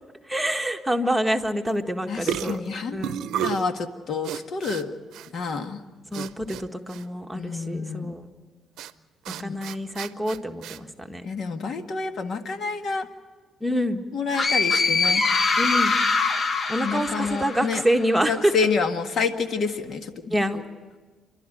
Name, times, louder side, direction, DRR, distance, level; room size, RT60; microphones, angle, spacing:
voice 1, 0.3-2.6 2.9-3.3 6.1-8.2 9.4-11.3 13.6-14.0 15.6-16.0 16.7-18.5 20.3-20.6, equal, 5° right, 3 dB, 1.6 m, -26 dB
sound 1, 1.7-1.9 2.2-3.7 4.2-4.8 5.1-5.3 6.1-6.6 6.9-7.0 8.8-8.9 9.3-10.8, right 11 dB, 85° right, 0.6 m, -32 dB
voice 2, 2.1-3.0 3.3-5.0 5.3-5.8 7.3-8.2 9.4-9.6 11.2-13.1 14.1-15.2 16.8-17.8 18.3-20.6, left 5 dB, 60° left, 7 dB, 1.8 m, -28 dB
sound 2, 14.3-18.0, left 4 dB, 40° left, 1.1 m, -23 dB
29.0 x 12.5 x 9.2 m, 1.4 s
cardioid pair, 80°, 0 cm